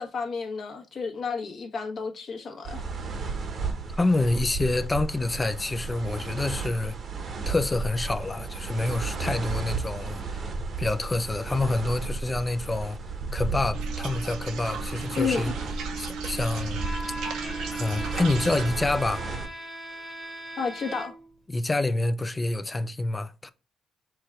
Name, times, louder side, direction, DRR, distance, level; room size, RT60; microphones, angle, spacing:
voice 1, 0.0-2.8 15.2-15.5 20.6-21.1, left 5 dB, 55° left, 1.1 m, -31 dB
sound 1, 2.6-19.5, right 4 dB, 50° right, 0.9 m, -34 dB
voice 2, 4.0-7.0 7.5-10.4 10.8-13.0 13.3-15.5 16.0-16.8 17.7-19.2 21.5-23.5, left 2 dB, 20° left, 0.4 m, -27 dB
sound 2, 13.7-18.7, right 5 dB, 90° right, 0.8 m, -36 dB
Bowed string instrument, 16.7-21.4, equal, 5° left, 1.1 m, -39 dB
4.6 x 2.4 x 4.4 m
cardioid pair, 90°, 0 cm